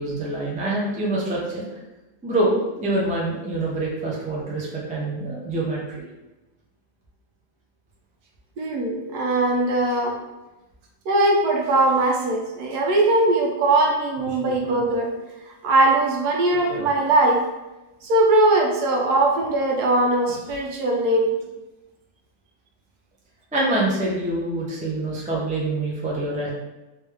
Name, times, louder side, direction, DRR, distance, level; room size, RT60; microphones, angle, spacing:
voice 1, 0.0-1.6 2.2-6.0 23.5-26.5, right 2 dB, 10° right, -5 dB, 0.4 m, -25 dB
voice 2, 8.6-10.1 11.1-15.1 15.6-17.4 18.0-21.4, right 2 dB, 75° right, 0 dB, 1.2 m, -20 dB
3.4 x 3.0 x 3.4 m, 1.0 s
omnidirectional pair, 1.7 m